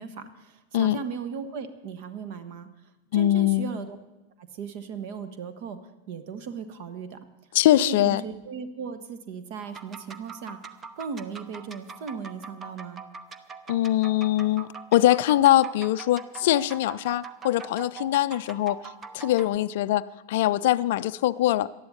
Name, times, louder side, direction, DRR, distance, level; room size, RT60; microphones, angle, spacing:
voice 1, 0.0-2.7 3.1-4.0 4.4-5.8 6.1-7.2 7.8-13.0, right 6 dB, 45° right, 11 dB, 1.3 m, -37 dB
voice 2, 3.1-3.7 7.5-8.2 13.7-18.8 19.1-21.7, left 14 dB, 55° left, 17 dB, 0.4 m, -22 dB
sound 1, 9.6-19.6, right 5 dB, 20° right, 0.8 m, -43 dB
18.5 x 12.5 x 4.2 m, 1.0 s
figure-of-eight pair, 90°, 0 cm